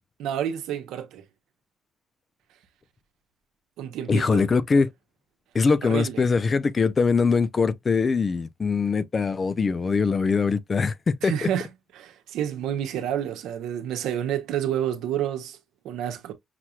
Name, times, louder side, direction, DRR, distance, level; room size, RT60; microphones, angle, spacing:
voice 1, 0.2-1.2 3.8-4.5 5.8-6.2 11.2-11.7 12.0-15.6 15.8-16.3, right 10 dB, 90° right, 0.9 m, -29 dB
voice 2, 4.1-4.9 5.5-11.5, left 4 dB, 35° left, 0.5 m, -22 dB
5.9 x 2.9 x 2.3 m
cardioid pair, 90°, 0 cm